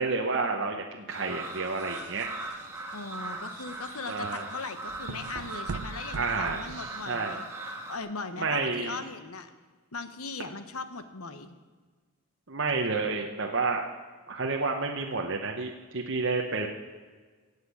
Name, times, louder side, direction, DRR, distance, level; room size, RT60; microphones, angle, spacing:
voice 1, 0.0-2.3 4.1-4.4 6.2-7.4 8.4-8.9 12.5-13.8 14.3-16.7, right 4 dB, 55° right, 1 dB, 1.0 m, -30 dB
sound 1, 1.1-8.0, right 2 dB, 10° right, 1.5 m, -39 dB
sound 2, 1.4-7.3, right 4 dB, 80° right, 0.6 m, -43 dB
voice 2, 2.9-7.5 7.9-9.5 9.9-11.6, left 4 dB, 75° left, 10 dB, 1.1 m, -39 dB
18.0 x 8.1 x 8.4 m, 1.5 s
head